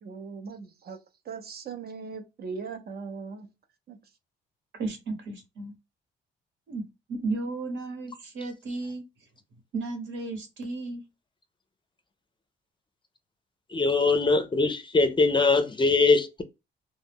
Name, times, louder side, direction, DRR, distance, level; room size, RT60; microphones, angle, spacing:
voice 1, 0.0-3.5 3.9-4.1, right 5 dB, 50° right, 0.6 m, -39 dB
voice 2, 4.8-5.7 6.7-6.8 7.1-9.0 9.7-11.0, right 3 dB, 75° right, 1.1 m, -33 dB
voice 3, 13.7-16.4, left 3 dB, 25° left, 0.5 m, -22 dB
2.2 x 2.1 x 3.4 m
cardioid pair, 90°, 20 cm